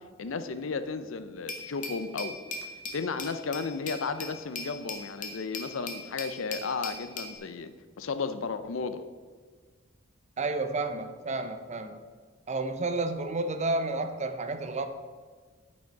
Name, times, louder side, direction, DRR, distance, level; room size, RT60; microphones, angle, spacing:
voice 1, 0.2-2.4 2.9-7.7 8.0-9.0, left 4 dB, 80° left, 11 dB, 0.6 m, -34 dB
Glass, 1.5-7.4, left 3 dB, 45° left, 1.0 m, -39 dB
voice 2, 10.4-12.0 12.5-14.9, right 2 dB, 35° right, 8 dB, 0.6 m, -31 dB
9.3 x 5.2 x 4.6 m, 1.5 s
head